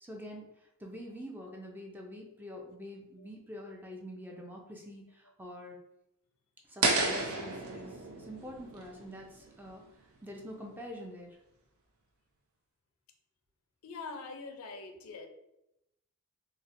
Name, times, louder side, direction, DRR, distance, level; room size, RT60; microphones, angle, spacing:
voice 1, 0.0-5.8 6.7-9.8 10.2-11.4, equal, 10° right, 0 dB, 0.4 m, -46 dB
sound 1, 6.8-9.8, right 3 dB, 85° right, 0.6 m, -32 dB
voice 2, 13.8-15.3, left 4 dB, 80° left, 5 dB, 0.4 m, -43 dB
4.0 x 2.0 x 2.5 m, 0.85 s
head